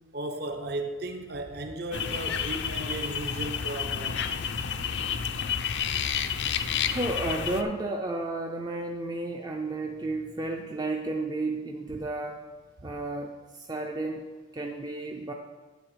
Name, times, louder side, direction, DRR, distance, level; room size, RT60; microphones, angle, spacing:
voice 1, 0.1-4.2, right 2 dB, 50° right, 5 dB, 0.8 m, -35 dB
sound 1, 1.9-7.6, left 7 dB, 55° left, 0.5 m, -30 dB
voice 2, 6.9-12.4 12.8-14.2 14.5-15.3, right 2 dB, 20° right, 1 dB, 0.4 m, -32 dB
9.0 x 7.3 x 4.8 m, 1.3 s
head